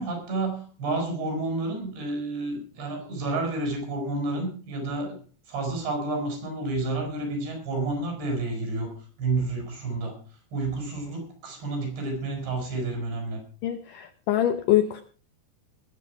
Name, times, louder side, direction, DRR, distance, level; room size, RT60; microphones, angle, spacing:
voice 1, 0.0-5.2 5.5-8.9 9.2-10.2 10.5-13.4, right 2 dB, 85° right, 3 dB, 7.5 m, -30 dB
voice 2, 13.6-15.0, left 12 dB, 80° left, 9 dB, 1.9 m, -24 dB
21.0 x 8.1 x 4.7 m, 0.40 s
omnidirectional pair, 4.9 m